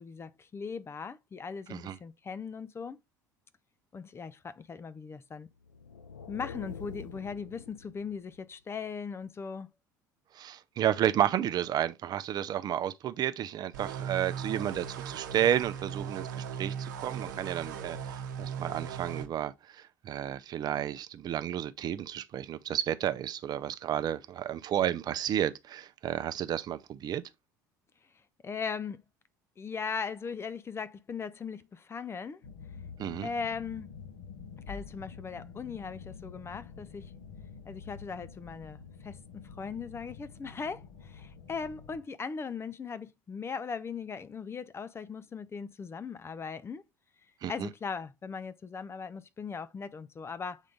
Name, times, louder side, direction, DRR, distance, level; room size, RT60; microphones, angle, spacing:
voice 1, 0.0-3.0 3.9-5.5 6.3-9.7 28.4-29.0 29.6-32.4 33.2-34.0 34.7-37.1 37.6-46.8 47.5-50.6, left 5 dB, 25° left, 0.5 m, -39 dB
sound 1, 5.6-8.5, left 6 dB, 85° left, 0.5 m, -46 dB
voice 2, 10.3-27.2 33.0-33.3 47.4-47.7, right 10 dB, 40° right, 0.6 m, -32 dB
sound 2, 13.7-19.3, right 7 dB, 70° right, 0.8 m, -38 dB
sound 3, 32.4-42.0, left 6 dB, 65° left, 1.4 m, -48 dB
8.1 x 3.7 x 3.5 m
figure-of-eight pair, 65°, 10 cm